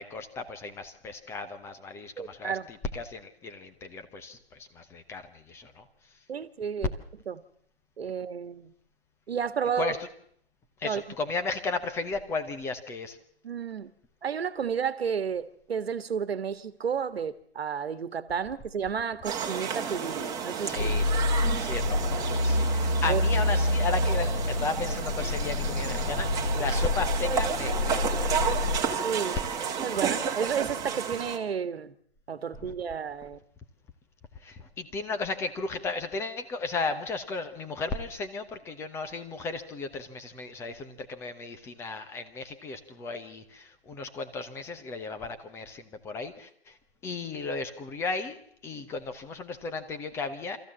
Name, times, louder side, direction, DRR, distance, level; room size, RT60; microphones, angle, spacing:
voice 1, 0.0-5.9 9.8-10.0 10.8-13.2 20.6-21.1 21.4-28.3 32.6-32.7 34.3-46.8 47.0-48.4 48.6-50.6, left 3 dB, 10° left, 0.9 m, -35 dB
voice 2, 2.2-2.7 6.3-6.9 7.3-7.4 8.0-8.7 9.3-9.9 10.8-11.0 13.4-13.9 14.2-20.9 23.1-23.2 28.9-29.4 29.8-31.9 32.3-33.4, right 7 dB, 65° right, 1.6 m, -32 dB
sound 1, 19.2-31.4, right 7 dB, 10° right, 1.7 m, -32 dB
sound 2, 20.8-28.8, left 2 dB, 55° left, 2.2 m, -27 dB
25.5 x 14.5 x 7.4 m
hypercardioid pair, 145°, 33 cm